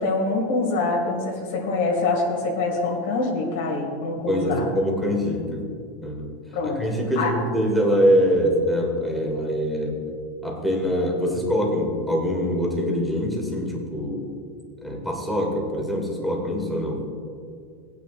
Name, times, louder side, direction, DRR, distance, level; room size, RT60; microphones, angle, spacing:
voice 1, 0.0-4.6 6.5-6.8 7.2-7.3, left 3 dB, 65° left, -1 dB, 2.2 m, -25 dB
voice 2, 4.3-5.7 6.0-6.3 6.6-10.0 10.4-14.3 14.8-17.1, equal, ahead, -1 dB, 1.7 m, -24 dB
19.0 x 9.4 x 2.5 m, 2.3 s
supercardioid pair, 165°, 0 cm